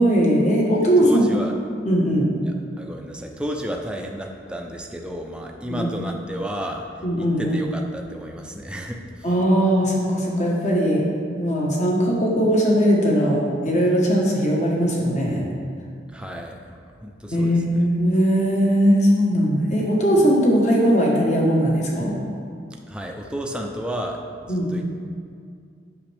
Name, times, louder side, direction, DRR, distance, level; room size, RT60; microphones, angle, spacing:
voice 1, 0.0-1.3 1.8-2.3 5.7-5.9 7.0-7.6 9.2-15.4 17.3-22.1 24.5-24.8, equal, 40° left, -2 dB, 1.3 m, -19 dB
voice 2, 1.0-1.5 2.4-6.9 7.2-9.3 16.1-17.8 22.9-24.8, equal, 5° right, 1 dB, 0.5 m, -32 dB
8.5 x 6.2 x 3.4 m, 2.3 s
head